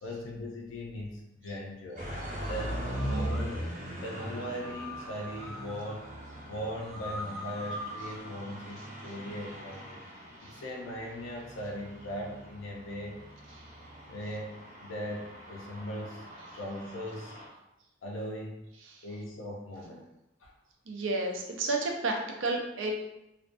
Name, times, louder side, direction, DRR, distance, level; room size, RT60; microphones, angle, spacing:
voice 1, 0.0-2.0 2.5-6.1 6.5-10.0 10.4-13.3 13.8-16.2 16.5-17.4 18.0-18.7 19.0-20.1 20.4-20.5, equal, 85° left, -1 dB, 0.5 m, -39 dB
sound 1, 2.0-17.5, equal, 40° right, 0.7 m, -41 dB
sound 2, 3.0-3.6 4.6-5.8 6.8-8.2, left 1 dB, ahead, 0.4 m, -42 dB
voice 2, 20.9-23.0, right 2 dB, 85° right, 1 dB, 0.5 m, -31 dB
2.5 x 2.1 x 2.5 m, 0.89 s
head